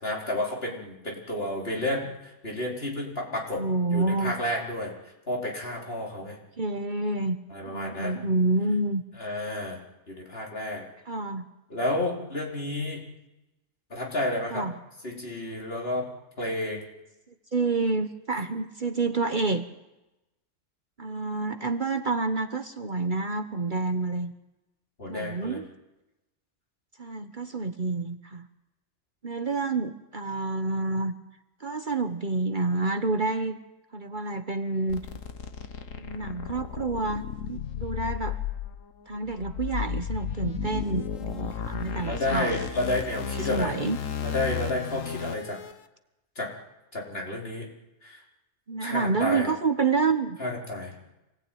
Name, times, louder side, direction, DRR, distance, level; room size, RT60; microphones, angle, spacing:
voice 1, 0.0-3.6 3.9-4.9 5.3-6.4 7.5-8.2 9.2-9.8 10.1-10.8 11.7-13.0 13.9-14.7 15.0-16.1 16.4-16.9 25.0-25.6 42.0-43.8 44.2-45.6 46.4-46.5 46.9-47.7 48.0-48.2 48.8-49.5 50.4-51.0, left 1 dB, 50° left, -2 dB, 4.9 m, -31 dB
voice 2, 3.6-4.4 6.6-7.4 7.7-9.0 11.1-11.4 14.5-14.7 17.5-19.6 21.0-24.3 25.1-25.7 27.0-28.5 29.2-31.1 31.6-33.6 33.9-35.0 36.0-38.4 39.1-42.5 43.4-44.0 48.7-50.4, right 3 dB, 40° right, 8 dB, 1.2 m, -28 dB
sound 1, 34.9-45.7, left 7 dB, 85° left, 1.5 m, -34 dB
26.0 x 18.5 x 9.3 m, 0.98 s
omnidirectional pair, 1.3 m